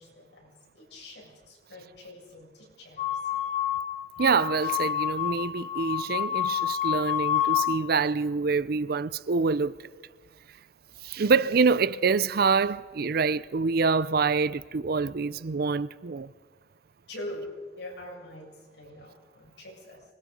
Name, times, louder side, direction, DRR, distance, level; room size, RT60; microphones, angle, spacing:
voice 1, 0.0-3.4 15.1-15.5 17.1-20.0, left 1 dB, 80° left, 7.5 m, -44 dB
sound 1, 3.0-7.8, left 11 dB, 45° left, 1.2 m, -28 dB
voice 2, 4.2-9.8 11.0-16.3, right 4 dB, 60° right, 0.5 m, -26 dB
25.5 x 20.5 x 5.3 m
head